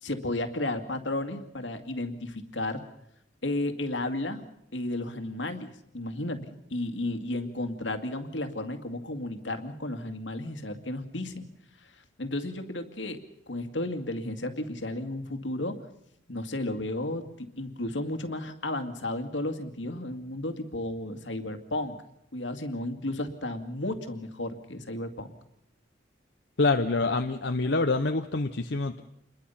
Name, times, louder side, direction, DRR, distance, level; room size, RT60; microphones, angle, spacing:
voice 1, 0.0-2.8 3.4-4.5 4.7-11.5 12.2-13.2 13.5-15.8 16.3-22.0 22.3-25.3, left 1 dB, 90° left, 8 dB, 2.3 m, -33 dB
voice 2, 26.6-29.0, left 3 dB, 70° left, 5 dB, 1.0 m, -26 dB
28.0 x 21.5 x 5.8 m, 0.77 s
head